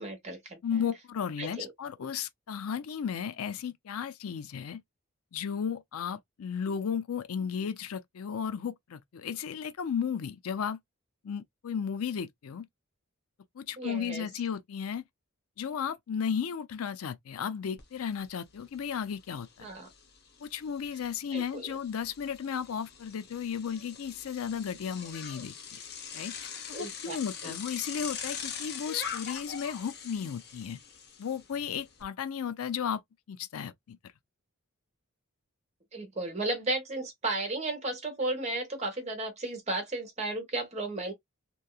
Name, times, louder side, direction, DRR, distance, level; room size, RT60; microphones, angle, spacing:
voice 1, 0.0-0.6 1.4-1.7 13.8-14.3 19.6-19.9 21.3-21.7 26.7-27.2 27.4-27.6 35.9-41.1, right 2 dB, 30° right, 1.2 m, -34 dB
voice 2, 0.6-4.8 5.3-10.8 11.2-12.7 13.5-15.0 15.6-19.7 20.4-25.8 26.1-26.4 26.7-30.8 31.2-33.0 33.3-34.0, left 7 dB, 85° left, 0.4 m, -34 dB
Bicycle, 17.8-17.9 18.3-32.0, left 7 dB, 50° left, 0.8 m, -43 dB
3.0 x 2.6 x 2.3 m
head